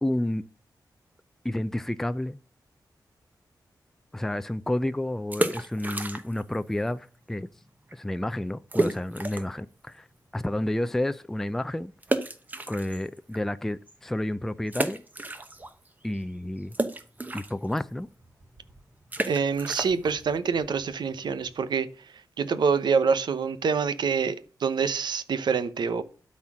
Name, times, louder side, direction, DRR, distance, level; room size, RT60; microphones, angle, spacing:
voice 1, 0.0-0.4 1.4-2.4 4.1-7.5 7.9-10.1 10.3-11.9 12.7-15.0 16.0-16.8 17.3-18.1, left 1 dB, 5° left, 0.4 m, -30 dB
sound 1, 5.2-6.6 6.8-6.9 7.5-7.6 7.9-8.0 8.7-9.6 10.1-10.2 12.0-13.4 13.9-14.0 14.7-15.9 16.1-21.6, right 2 dB, 25° right, 1.0 m, -32 dB
voice 2, 19.3-21.9 22.4-26.0, right 5 dB, 85° right, 0.8 m, -26 dB
12.0 x 4.3 x 6.0 m
wide cardioid pair, 140°, 7 cm